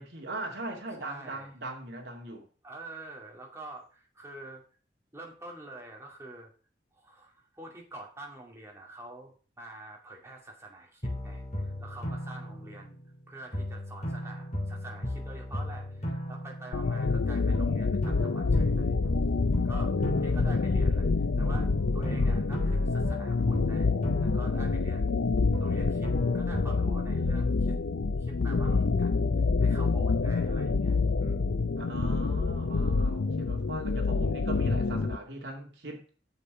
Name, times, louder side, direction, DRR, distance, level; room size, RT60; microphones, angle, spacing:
voice 1, 0.0-2.5 31.8-36.0, right 2 dB, 65° right, 2.3 m, -40 dB
voice 2, 1.0-1.5 2.6-4.6 5.1-6.5 7.0-13.0 13.3-18.9 19.6-21.1 21.4-23.9 24.2-25.2 25.6-27.8 28.2-29.2 29.6-31.5, right 2 dB, 15° right, 2.2 m, -47 dB
sound 1, 11.0-13.2 13.5-17.2 17.5-21.2 21.5-25.2 25.5-27.1, equal, 40° left, 3.1 m, -36 dB
sound 2, 16.7-35.2, left 4 dB, 90° left, 0.6 m, -27 dB
8.1 x 6.9 x 4.8 m
head